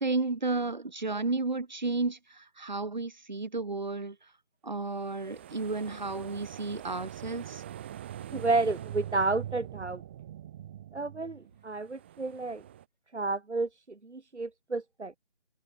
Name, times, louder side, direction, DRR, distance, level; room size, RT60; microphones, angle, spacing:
voice 1, 0.0-4.1 4.6-7.6, right 3 dB, 40° right, 1.4 m, -32 dB
sound 1, 5.0-12.8, right 11 dB, 10° right, 3.6 m, -43 dB
voice 2, 8.3-10.0 10.9-12.6 13.1-15.2, right 3 dB, 80° right, 2.1 m, -31 dB
figure-of-eight pair, 175°, 34 cm